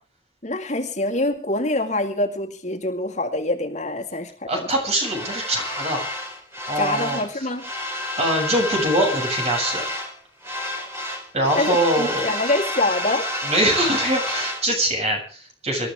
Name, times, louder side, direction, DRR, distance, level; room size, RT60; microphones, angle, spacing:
voice 1, 0.4-4.7 6.8-7.7 11.5-13.3, left 2 dB, 40° left, 3 dB, 2.1 m, -25 dB
voice 2, 4.5-6.1 6.7-7.2 8.2-9.8 11.3-12.3 13.4-15.9, right 1 dB, 40° right, 2 dB, 7.5 m, -23 dB
sound 1, 5.0-7.3 7.6-10.2 10.4-14.6, left 1 dB, 15° right, 4.7 m, -29 dB
26.0 x 13.0 x 3.6 m, 0.37 s
head